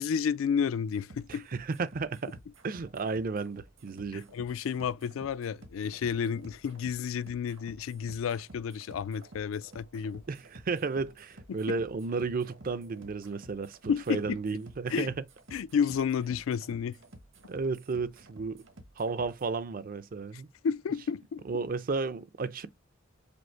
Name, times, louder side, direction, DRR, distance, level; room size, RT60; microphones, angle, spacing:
voice 1, 0.0-1.5 4.1-10.2 13.9-14.4 14.9-15.1 15.5-17.0 20.6-21.4, left 7 dB, 75° left, 0.3 m, -31 dB
sound 1, 0.9-19.5, right 1 dB, 65° right, 1.1 m, -53 dB
voice 2, 1.3-2.4 2.6-4.3 10.3-15.1 17.5-18.6 19.0-20.5 21.4-22.7, right 4 dB, 45° right, 0.5 m, -33 dB
5.1 x 2.0 x 4.5 m
head